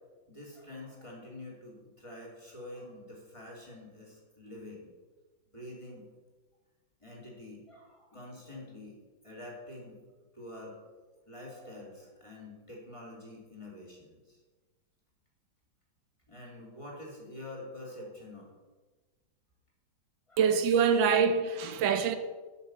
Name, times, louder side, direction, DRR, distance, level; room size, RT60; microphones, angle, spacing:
voice 1, 0.3-4.9 5.5-6.1 7.0-9.0 9.2-10.0 10.3-10.8 11.3-14.4 16.3-18.5 20.3-20.7 21.0-21.2, left 1 dB, 15° left, 3.1 m, -47 dB
voice 2, 20.4-22.2, right 6 dB, 85° right, 1.6 m, -25 dB
10.5 x 6.5 x 7.7 m
omnidirectional pair, 2.0 m